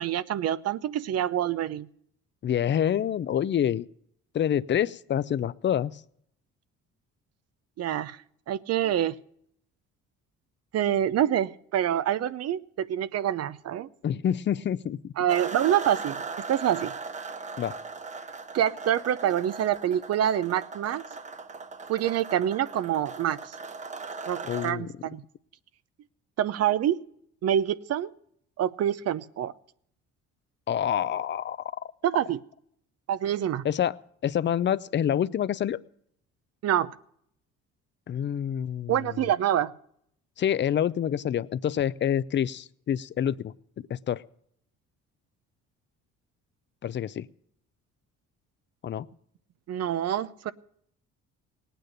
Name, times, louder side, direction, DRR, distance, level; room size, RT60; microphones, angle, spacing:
voice 1, 0.0-1.9 7.8-8.2 8.5-9.2 10.7-13.9 15.2-16.2 16.5-16.9 18.5-21.0 21.9-23.5 24.3-25.2 26.4-27.0 27.4-28.1 28.6-29.5 32.0-32.4 33.1-33.6 36.6-36.9 38.9-39.7 49.7-50.5, right 10 dB, 55° right, 16 dB, 0.8 m, -26 dB
voice 2, 2.4-3.9 4.3-6.0 14.0-15.1 17.6-17.7 24.4-24.9 30.7-31.9 33.6-34.0 34.2-35.8 38.1-39.3 40.4-44.2 46.8-47.3 48.8-49.1, left 9 dB, 40° left, 17 dB, 0.6 m, -27 dB
sound 1, 15.3-24.7, right 4 dB, 25° right, 0.8 m, -39 dB
18.5 x 9.2 x 6.6 m, 0.68 s
cardioid pair, 90°, 29 cm